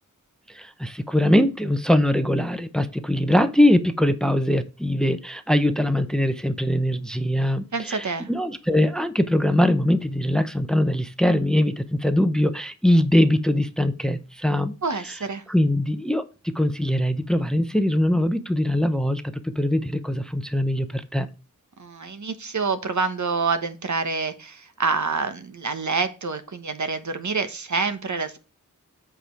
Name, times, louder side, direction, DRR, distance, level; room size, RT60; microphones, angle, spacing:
voice 1, 0.5-14.8 15.1-15.2 15.5-21.3, left 1 dB, ahead, 10 dB, 0.7 m, -22 dB
voice 2, 7.7-8.3 14.8-15.4 21.8-28.4, right 4 dB, 65° right, 9 dB, 1.1 m, -27 dB
8.0 x 4.9 x 4.5 m, 0.31 s
wide cardioid pair, 85°, 32 cm